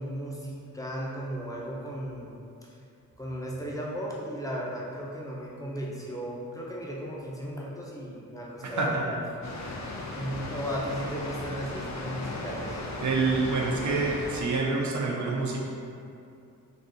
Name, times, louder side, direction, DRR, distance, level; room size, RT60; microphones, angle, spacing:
voice 1, 0.0-2.8 3.2-9.2 9.6-12.8, equal, 10° left, -4 dB, 0.7 m, -36 dB
voice 2, 8.6-9.0 9.6-9.8 13.0-15.7, right 3 dB, 55° right, -2 dB, 0.6 m, -27 dB
Water, 9.4-14.5, left 2 dB, 50° left, 0.5 m, -36 dB
3.9 x 2.7 x 2.7 m, 2.5 s
cardioid pair, 50°, 36 cm